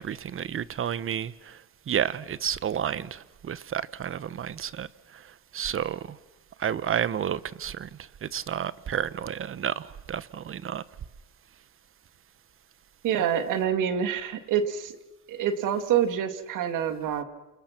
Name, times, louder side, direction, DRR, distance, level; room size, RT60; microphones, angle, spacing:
voice 1, 0.0-6.2 6.6-10.8, right 9 dB, 40° right, 1.0 m, -31 dB
voice 2, 13.0-14.9 15.3-17.2, right 8 dB, 70° right, 2.4 m, -26 dB
28.5 x 28.0 x 6.0 m
cardioid pair, 105°, 32 cm